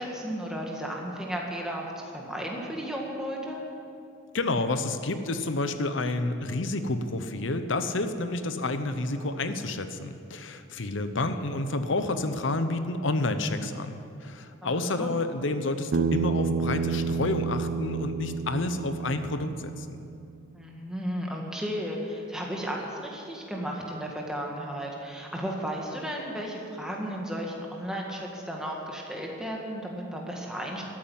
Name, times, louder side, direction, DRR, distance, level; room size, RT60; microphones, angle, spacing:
voice 1, 0.0-3.6 14.6-15.1 20.5-30.8, equal, 5° right, -1 dB, 1.8 m, -34 dB
voice 2, 4.3-20.0, left 2 dB, 65° left, 9 dB, 0.9 m, -29 dB
Bass guitar, 15.9-20.2, right 5 dB, 55° right, 0.3 m, -30 dB
13.5 x 8.8 x 9.3 m, 2.6 s
head